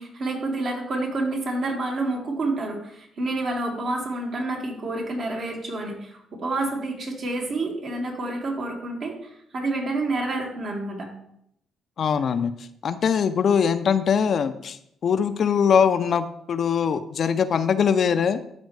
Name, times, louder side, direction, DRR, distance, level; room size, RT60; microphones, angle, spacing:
voice 1, 0.0-11.1, right 2 dB, 60° right, -1 dB, 2.0 m, -28 dB
voice 2, 12.0-18.4, left 7 dB, 55° left, 10 dB, 0.5 m, -22 dB
12.5 x 4.4 x 3.3 m, 0.74 s
cardioid pair, 90°, 0 cm